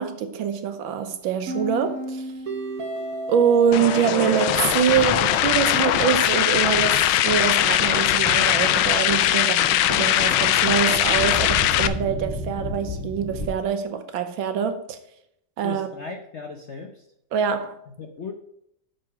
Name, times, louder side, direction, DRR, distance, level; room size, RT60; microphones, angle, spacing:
voice 1, 0.0-2.3 3.3-15.0 15.6-15.9 17.3-17.8, right 8 dB, 80° right, 1.7 m, -24 dB
sound 1, 1.5-6.5, right 3 dB, 50° right, 1.5 m, -33 dB
sound 2, 3.7-11.9, left 12 dB, 90° left, 1.4 m, -20 dB
Thunder, 3.7-13.5, left 2 dB, 30° left, 1.9 m, -35 dB
voice 2, 15.6-17.0 17.9-18.3, left 4 dB, 60° left, 0.7 m, -37 dB
7.7 x 6.0 x 5.9 m
omnidirectional pair, 2.1 m